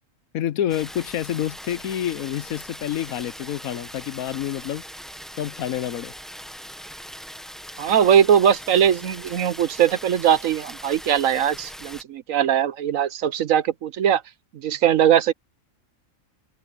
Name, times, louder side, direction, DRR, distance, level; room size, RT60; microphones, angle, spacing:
voice 1, 0.3-4.8 5.4-6.1, left 11 dB, 85° left, 1.2 m, -28 dB
sound 1, 0.7-12.0, equal, ahead, 1.2 m, -40 dB
voice 2, 7.8-14.2 14.5-15.3, right 9 dB, 75° right, 1.2 m, -20 dB
omnidirectional pair, 1.4 m